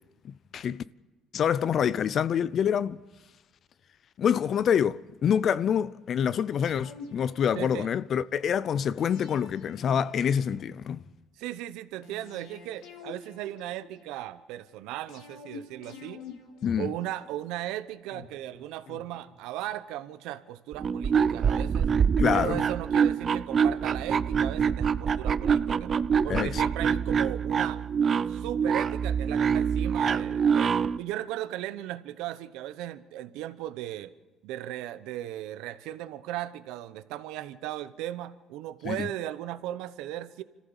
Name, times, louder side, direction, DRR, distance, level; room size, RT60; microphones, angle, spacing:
voice 1, 0.2-0.8 1.3-3.0 4.2-11.0 16.6-16.9 22.2-22.6 26.3-26.6 38.9-39.1, left 8 dB, 50° left, 0.5 m, -26 dB
sound 1, 6.6-8.2 9.0-11.1 12.0-14.2 15.1-17.5 18.1-19.8 20.1-20.2, left 4 dB, 85° left, 3.1 m, -48 dB
voice 2, 7.6-7.9 11.4-16.2 16.8-21.9 22.3-25.9 26.2-27.8 28.3-34.1 34.4-40.4, right 13 dB, 85° right, 1.0 m, -37 dB
sound 2, 20.7-31.0, right 7 dB, 40° right, 0.6 m, -25 dB
26.0 x 14.5 x 7.2 m
cardioid pair, 110°, 0 cm